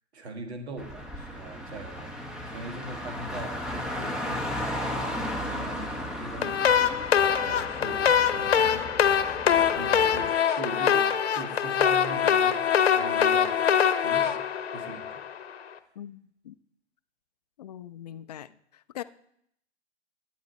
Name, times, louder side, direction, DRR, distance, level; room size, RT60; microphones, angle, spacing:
voice 1, 0.1-2.2 2.5-7.1 7.4-8.9 9.2-9.4 9.7-14.4 14.7-15.2, right 2 dB, 65° right, 1.7 m, -41 dB
Car, 0.8-10.3, left 1 dB, ahead, 0.8 m, -35 dB
sound 1, 6.4-15.5, left 8 dB, 60° left, 0.9 m, -24 dB
voice 2, 17.6-18.5 18.9-19.0, left 11 dB, 35° left, 0.4 m, -40 dB
11.5 x 8.5 x 4.2 m
figure-of-eight pair, 115°, 35 cm